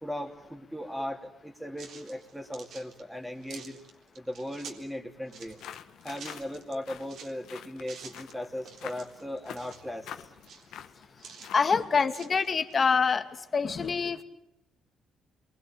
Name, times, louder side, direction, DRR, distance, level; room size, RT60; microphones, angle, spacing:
voice 1, 0.0-3.8 4.1-5.6 6.0-10.1, left 1 dB, 5° right, 3 dB, 3.1 m, -38 dB
sound 1, 1.8-4.9 5.3-7.3 7.8-8.3 8.6-9.9 10.3-11.6 12.1-12.7, right 6 dB, 75° right, 3.7 m, -48 dB
sound 2, 5.3-11.8, left 9 dB, 80° left, 1.7 m, -47 dB
voice 2, 11.5-13.2 13.5-14.2, left 5 dB, 40° left, 8 dB, 2.2 m, -25 dB
29.0 x 23.0 x 8.9 m, 0.86 s
cardioid pair, 90°, 0 cm